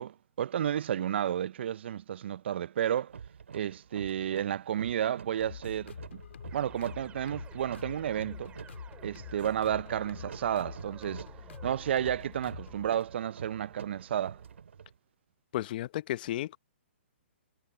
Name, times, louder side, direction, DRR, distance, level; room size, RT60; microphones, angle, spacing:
voice 1, 0.0-3.1 3.5-6.2 6.5-8.5 9.0-11.3 11.6-14.4, right 10 dB, 60° right, 0.5 m, -32 dB
sound 1, 3.1-14.9, right 7 dB, 75° right, 3.0 m, -48 dB
sound 2, 5.4-12.9, left 7 dB, 70° left, 3.4 m, -46 dB
sound 3, 6.5-14.6, right 9 dB, 15° right, 5.6 m, -55 dB
voice 2, 15.5-16.6, left 14 dB, 45° left, 0.8 m, -33 dB
hypercardioid pair, 140°, 7 cm